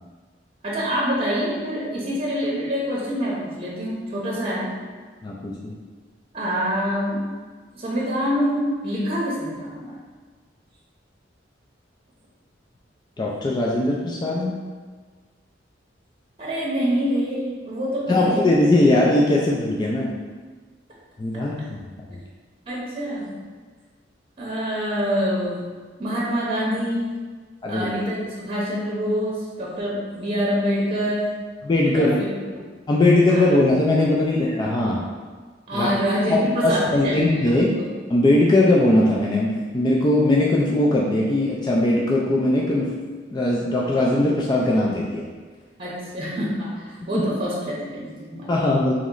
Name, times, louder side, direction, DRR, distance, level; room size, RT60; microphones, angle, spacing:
voice 1, 0.6-4.7 6.3-7.3 7.7-10.0 16.4-18.5 22.7-23.3 24.4-25.6 26.0-27.2 27.7-31.3 31.9-32.4 33.3-33.4 35.7-37.9 45.8-48.6, equal, 30° right, -5 dB, 0.8 m, -26 dB
voice 2, 5.2-5.7 13.2-14.6 18.1-20.1 21.2-21.8 22.1-22.2 27.6-27.9 31.6-32.2 32.9-35.1 35.7-35.9 36.3-37.7 38.1-43.0 43.3-45.2 47.1-47.3 48.5-48.9, left 1 dB, 25° left, -3 dB, 0.3 m, -20 dB
3.1 x 3.0 x 3.7 m, 1.4 s
head